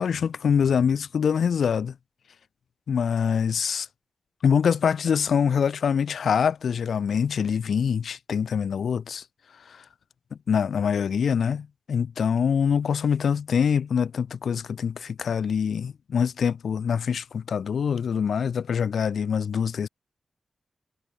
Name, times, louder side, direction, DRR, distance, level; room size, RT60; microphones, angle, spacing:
voice 1, 0.0-1.9 2.9-3.9 4.4-9.2 9.7-9.8 10.5-19.9, left 7 dB, 75° left, 7.1 m, -24 dB
wide cardioid pair, 165°, 0 cm